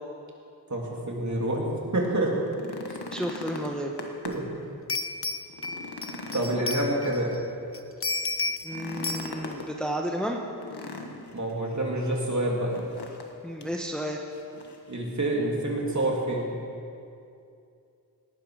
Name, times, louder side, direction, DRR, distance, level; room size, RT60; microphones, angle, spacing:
voice 1, 0.7-2.3 2.9-3.0 4.2-4.4 6.3-7.3 11.3-12.7 14.9-16.5, right 1 dB, 45° right, -2 dB, 3.2 m, -27 dB
sound 1, 2.3-4.6 5.0-5.1 5.5-7.4 8.6-9.7 10.6-11.5 12.7-13.3 13.6-13.7 14.3-14.9 16.0-16.1, left 3 dB, 75° left, 1.6 m, -40 dB
voice 2, 3.1-3.9 8.6-10.4 13.4-14.2, equal, ahead, 1 dB, 1.2 m, -32 dB
sound 2, 4.3-4.4 4.9-7.4 7.7-8.7 9.0-9.3, left 3 dB, 35° left, 0.8 m, -32 dB
18.0 x 11.5 x 5.1 m, 2.5 s
wide cardioid pair, 65°, 40 cm